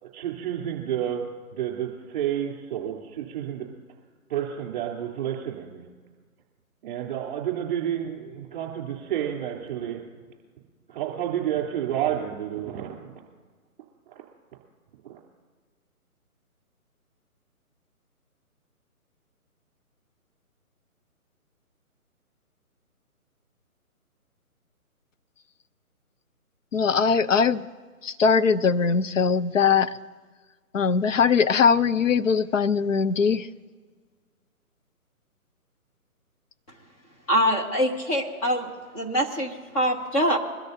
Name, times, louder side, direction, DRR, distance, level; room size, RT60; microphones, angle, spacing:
voice 1, 0.0-1.2 1.5-3.7 4.3-5.8 6.8-10.0 10.9-13.1 14.1-14.2 15.0-15.2, right 10 dB, 25° right, 0 dB, 3.4 m, -30 dB
voice 2, 26.7-27.7 28.0-30.0 30.7-33.5, left 6 dB, 60° left, 12 dB, 0.8 m, -21 dB
voice 3, 37.3-38.7 38.9-40.4, equal, 25° left, -1 dB, 1.7 m, -24 dB
23.0 x 13.0 x 2.7 m, 1.5 s
hypercardioid pair, 155°, 44 cm